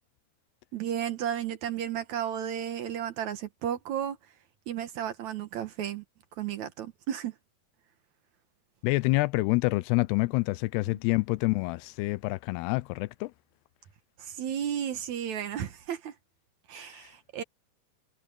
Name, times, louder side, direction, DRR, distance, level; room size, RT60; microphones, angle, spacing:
voice 1, 0.7-4.2 4.7-6.0 6.4-7.4 10.9-11.0 14.2-16.1 16.7-17.4, right 9 dB, 65° right, 2.0 m, -33 dB
voice 2, 8.8-13.3 16.8-17.1, left 23 dB, 90° left, 2.7 m, -27 dB
omnidirectional pair, 4.7 m